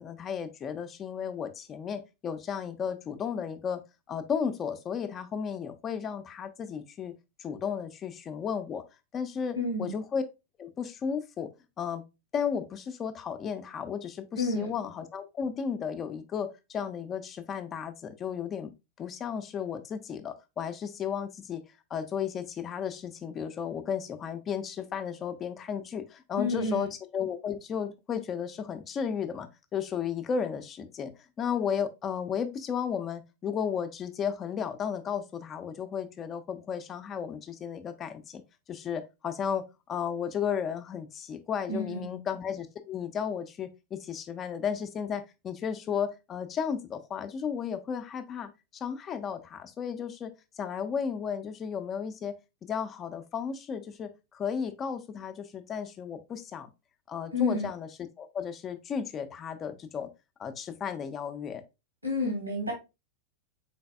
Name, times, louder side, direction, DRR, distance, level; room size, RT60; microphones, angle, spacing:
voice 1, 0.0-3.8 4.1-7.1 7.4-8.8 9.1-10.2 10.6-11.5 11.8-12.0 12.3-18.7 19.0-21.6 21.9-31.1 31.4-38.4 38.7-52.4 52.6-56.7 57.1-57.9 58.2-60.1 60.4-61.6, left 7 dB, 25° left, 0.5 m, -34 dB
voice 2, 9.6-9.9 14.4-14.7 26.4-26.9 41.7-42.2 57.3-57.7 62.0-62.7, left 2 dB, 85° right, 1.2 m, -30 dB
4.0 x 3.9 x 2.2 m
figure-of-eight pair, 90°, 0 cm